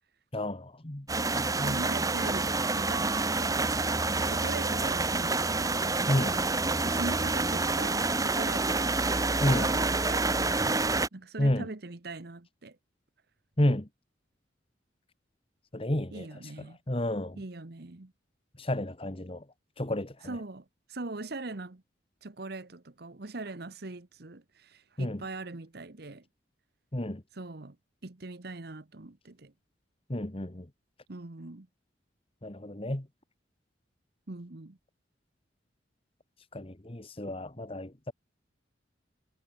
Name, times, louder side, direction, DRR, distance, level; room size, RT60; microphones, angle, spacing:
voice 1, 0.3-1.1 1.3-1.8 6.1-6.4 9.4-9.7 11.4-11.7 13.6-13.9 15.7-17.4 18.6-19.4 19.8-20.4 25.0-25.2 26.9-27.2 30.1-30.7 32.4-33.1 36.5-38.1, left 1 dB, 30° left, 1.5 m, -31 dB
sound 1, 1.1-11.1, right 3 dB, 20° right, 1.1 m, -28 dB
voice 2, 1.2-3.6 4.1-5.8 6.7-9.0 9.5-12.8 16.1-16.8 17.4-18.1 20.2-21.8 22.2-26.2 27.3-27.8 28.0-29.5 31.1-31.7 34.3-34.8, right 2 dB, 55° right, 1.2 m, -41 dB
head